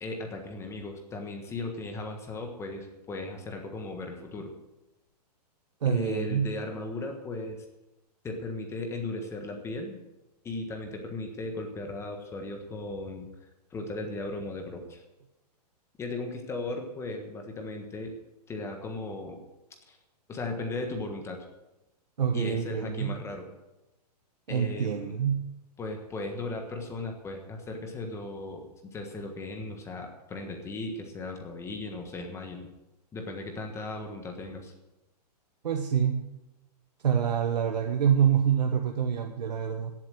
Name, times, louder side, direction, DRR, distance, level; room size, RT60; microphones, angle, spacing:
voice 1, 0.0-4.5 5.8-7.6 8.2-10.0 10.4-13.3 13.7-15.0 16.0-18.1 18.5-19.4 19.9-20.0 20.3-21.4 22.3-23.5 24.5-25.1 25.8-32.7 33.1-34.7, left 2 dB, 15° left, 3 dB, 1.5 m, -36 dB
voice 2, 5.8-6.5 22.2-23.2 24.5-25.5 35.6-36.2 37.0-39.9, right 8 dB, 90° right, 5 dB, 1.2 m, -26 dB
16.5 x 7.5 x 6.4 m, 0.98 s
hypercardioid pair, 150°, 21 cm